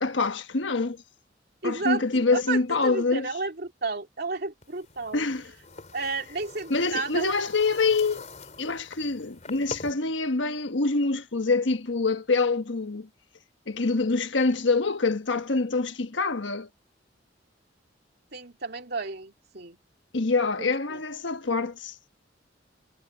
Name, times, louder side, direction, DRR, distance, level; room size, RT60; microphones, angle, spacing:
voice 1, 0.0-1.0 1.6-3.3 5.1-5.5 6.7-8.2 8.6-13.1 13.7-16.7 20.1-21.9, left 3 dB, 85° left, 1.3 m, -25 dB
voice 2, 1.6-5.3 5.9-7.3 18.3-19.8 20.6-21.0, right 3 dB, 60° right, 2.8 m, -32 dB
sound 1, 4.6-9.9, left 3 dB, 40° left, 4.2 m, -44 dB
head